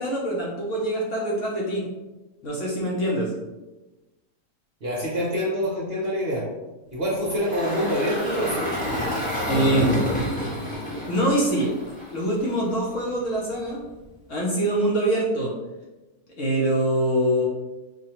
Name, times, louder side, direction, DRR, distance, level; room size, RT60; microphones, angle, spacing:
voice 1, 0.0-1.8 2.4-3.3 9.5-10.0 10.9-11.7 12.1-13.8 14.3-15.5 16.4-17.5, right 1 dB, 60° left, -3 dB, 0.9 m, -24 dB
voice 2, 4.8-6.4 6.9-8.6, equal, 50° right, -5 dB, 0.8 m, -26 dB
Engine, 7.2-12.5, equal, 10° left, 0.5 m, -28 dB
4.8 x 2.2 x 2.9 m, 1.1 s
omnidirectional pair, 1.7 m